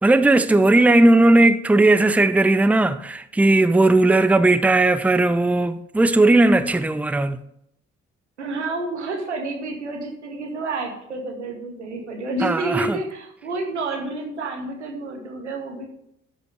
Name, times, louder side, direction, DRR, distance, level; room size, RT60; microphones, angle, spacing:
voice 1, 0.0-7.4 12.4-13.0, right 2 dB, 5° right, 0.6 m, -17 dB
voice 2, 8.4-15.9, right 2 dB, 90° right, 1.3 m, -29 dB
12.5 x 5.2 x 4.8 m
figure-of-eight pair, 40°, 34 cm